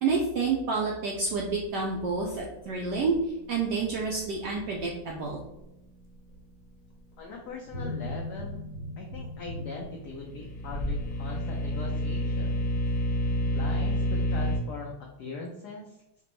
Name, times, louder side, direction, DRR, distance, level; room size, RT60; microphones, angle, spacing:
voice 1, 0.0-3.2 3.5-5.4, right 4 dB, 80° right, -2 dB, 0.9 m, -29 dB
voice 2, 7.2-8.6 9.0-12.6 13.5-16.0, left 4 dB, 85° left, 0 dB, 0.8 m, -40 dB
sound 1, 7.6-11.1 11.5-11.7, left 1 dB, 20° right, 0.4 m, -37 dB
sound 2, 10.0-14.6, equal, 70° left, 1.4 m, -29 dB
5.0 x 2.2 x 3.0 m, 0.88 s
omnidirectional pair, 2.3 m